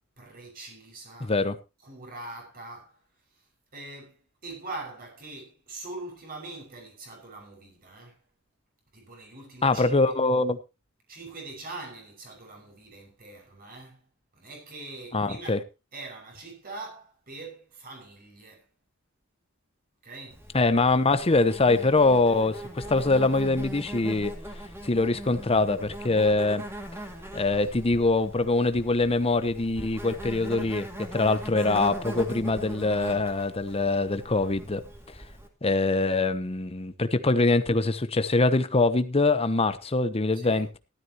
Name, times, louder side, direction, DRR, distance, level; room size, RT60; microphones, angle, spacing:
voice 1, 0.2-1.3 1.8-3.0 3.7-8.2 8.9-10.2 11.1-14.0 14.3-15.6 15.9-18.6 20.0-20.4 40.3-40.7, right 2 dB, 45° right, 5.9 m, -43 dB
voice 2, 1.2-1.6 9.6-10.6 15.1-15.6 20.5-24.3 24.8-26.6 27.3-34.8 35.6-40.8, left 3 dB, 30° left, 0.9 m, -24 dB
Insect, 20.3-35.5, equal, 10° right, 2.3 m, -40 dB
16.0 x 13.0 x 2.9 m
head